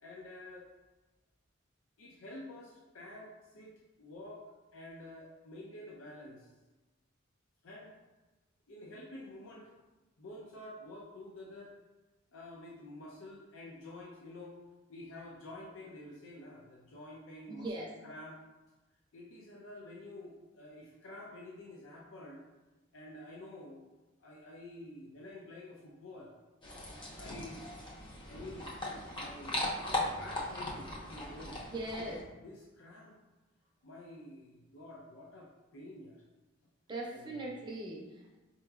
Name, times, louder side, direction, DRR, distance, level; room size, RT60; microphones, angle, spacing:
voice 1, 0.0-0.7 2.0-4.5 4.7-6.5 7.6-8.0 8.7-9.7 10.2-11.7 12.3-14.6 14.9-17.7 18.0-18.4 19.1-22.5 22.9-23.8 24.2-26.4 27.2-27.7 28.3-28.7 29.0-31.6 32.0-32.1 32.4-33.2 33.8-36.2 37.1-37.4, left 1 dB, 75° left, -4 dB, 0.5 m, -49 dB
voice 2, 17.5-17.9 31.7-32.2 36.9-38.4, right 1 dB, 20° right, -2 dB, 0.6 m, -40 dB
sound 1, 26.6-32.2, left 1 dB, 25° left, 0.6 m, -39 dB
4.6 x 2.9 x 2.3 m, 1.1 s
head